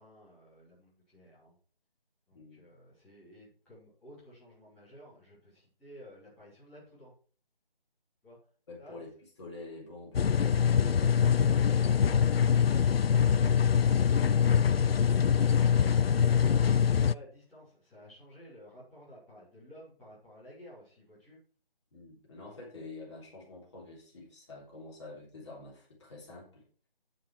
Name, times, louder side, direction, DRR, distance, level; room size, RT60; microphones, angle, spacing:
voice 1, 0.0-1.6 2.3-7.1 8.2-8.4 8.8-9.0 16.9-21.4, equal, 5° left, -13 dB, 3.0 m, -54 dB
voice 2, 2.3-2.6 8.7-9.1 9.4-10.9 21.9-26.7, left 3 dB, 30° left, -3 dB, 3.5 m, -47 dB
sound 1, 10.1-17.1, left 7 dB, 80° left, 0.5 m, -24 dB
9.0 x 7.7 x 4.7 m, 0.43 s
figure-of-eight pair, 155°, 30 cm